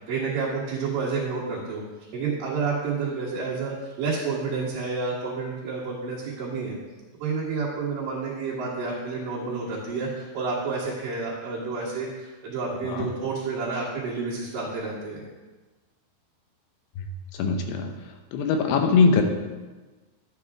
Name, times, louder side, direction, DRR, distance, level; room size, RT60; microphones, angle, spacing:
voice 1, 0.1-1.8 2.1-6.8 7.2-15.3, right 4 dB, 60° right, -8 dB, 3.1 m, -30 dB
voice 2, 17.4-17.9 18.3-19.2, left 5 dB, 80° left, 5 dB, 3.0 m, -21 dB
11.5 x 8.8 x 3.6 m, 1.3 s
omnidirectional pair, 4.8 m